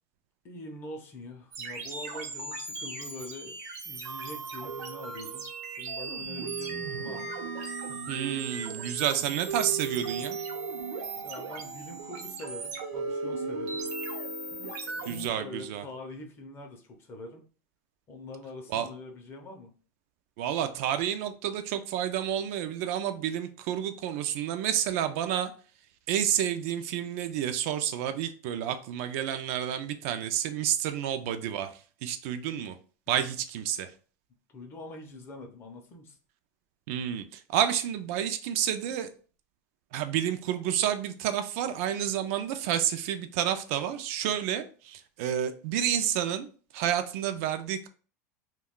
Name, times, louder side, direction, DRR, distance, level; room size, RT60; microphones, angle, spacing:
voice 1, 0.4-3.6 3.8-5.5 5.8-7.4 11.2-13.8 14.8-17.4 18.1-19.7 34.5-36.2, left 2 dB, 25° left, 0.6 m, -44 dB
sound 1, 1.5-15.3, right 4 dB, 80° right, 0.8 m, -36 dB
voice 2, 8.1-10.4 15.1-15.8 18.7-18.9 20.4-25.5 26.1-31.7 32.0-32.8 33.1-33.9 36.9-39.1 39.9-46.5 46.7-47.9, right 10 dB, 60° right, 0.3 m, -30 dB
2.2 x 2.2 x 3.6 m
supercardioid pair, 155°, 9 cm